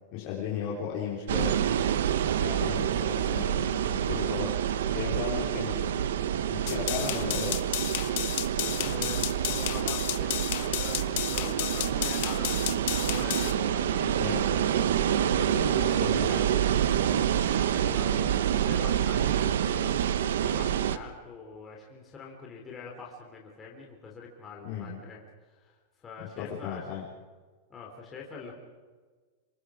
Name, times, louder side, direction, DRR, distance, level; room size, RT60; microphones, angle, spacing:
voice 1, 0.1-1.6 2.4-4.5 4.9-6.1 6.5-7.6 14.0-14.6 15.7-16.4 24.6-25.0 26.2-27.0, left 7 dB, 35° left, -4 dB, 3.6 m, -36 dB
sound 1, 1.3-21.0, right 10 dB, 85° right, 1.2 m, -27 dB
sound 2, 6.7-13.5, left 15 dB, 55° left, 1.5 m, -32 dB
voice 2, 8.6-14.5 15.2-25.2 25.5-27.0 27.7-28.5, left 4 dB, 15° left, -2 dB, 3.3 m, -44 dB
26.5 x 23.5 x 5.0 m, 1.4 s
supercardioid pair, 175°, 0 cm